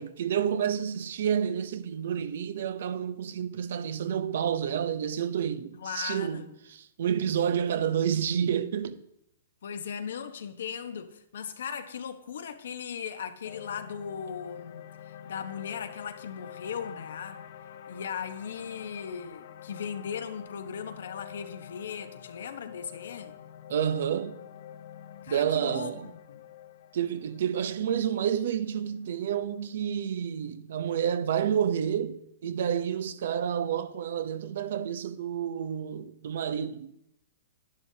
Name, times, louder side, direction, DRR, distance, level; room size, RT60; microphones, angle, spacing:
voice 1, 0.0-6.4 6.7-9.0 23.7-24.4 25.3-26.1 26.9-36.9, right 8 dB, 65° right, 0.7 m, -29 dB
voice 2, 5.8-6.5 9.6-14.8 15.3-17.4 17.9-23.4 25.2-26.4, left 7 dB, 75° left, 1.0 m, -38 dB
sound 1, 13.4-29.7, left 10 dB, 60° left, 0.6 m, -47 dB
11.0 x 11.0 x 2.8 m
hypercardioid pair, 160°, 0 cm